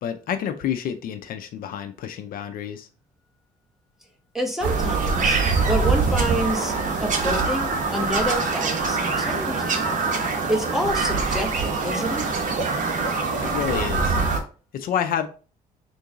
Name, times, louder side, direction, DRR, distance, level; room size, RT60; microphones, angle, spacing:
voice 1, 0.0-2.9 13.4-14.2 14.7-15.3, left 9 dB, 65° left, 0.5 m, -28 dB
voice 2, 4.3-5.4 5.7-6.7 7.0-9.8 10.5-12.3, equal, ahead, 1.0 m, -28 dB
Bird vocalization bird call bird song, 4.6-14.4, right 4 dB, 55° right, 0.9 m, -24 dB
3.8 x 2.6 x 3.5 m
cardioid pair, 100°, 16 cm